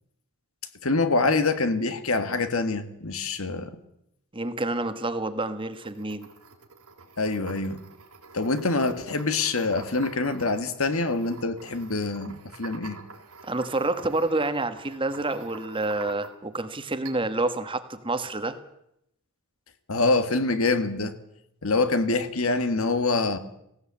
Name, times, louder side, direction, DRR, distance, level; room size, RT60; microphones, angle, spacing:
voice 1, 0.8-3.7 7.2-7.8 8.3-13.0 19.9-21.1 21.6-23.4, left 3 dB, 70° left, 1.7 m, -25 dB
voice 2, 4.3-6.3 13.4-18.6, right 2 dB, 25° right, 1.4 m, -28 dB
sound 1, 5.6-16.6 17.0-17.5, right 4 dB, 85° right, 3.9 m, -47 dB
18.5 x 17.0 x 8.5 m
head